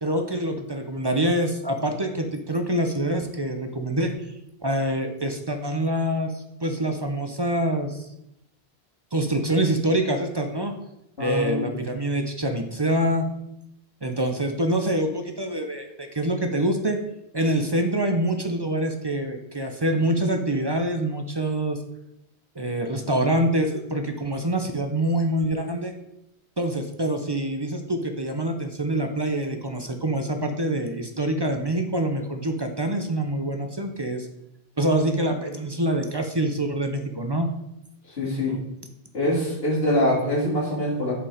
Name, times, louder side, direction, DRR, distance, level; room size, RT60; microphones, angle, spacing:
voice 1, 0.0-4.1 4.6-8.1 9.1-10.7 11.2-13.3 14.0-17.0 17.3-21.8 22.6-25.9 26.6-34.3 34.8-37.5, right 1 dB, 30° right, 5 dB, 0.6 m, -25 dB
voice 2, 11.2-11.8 38.1-38.6 39.1-41.2, left 1 dB, 65° left, -6 dB, 3.2 m, -24 dB
7.3 x 5.1 x 4.9 m, 0.83 s
omnidirectional pair, 1.1 m